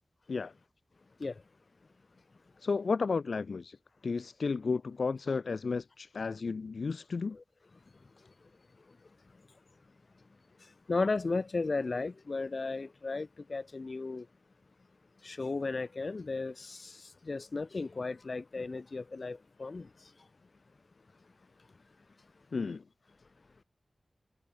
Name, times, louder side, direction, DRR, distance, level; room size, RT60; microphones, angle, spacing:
voice 1, 2.6-3.8 4.0-7.4 22.5-22.8, left 4 dB, 80° left, 0.8 m, -33 dB
voice 2, 10.9-14.3 15.2-19.9, left 3 dB, 55° left, 3.4 m, -35 dB
wide cardioid pair, 100°, 0 cm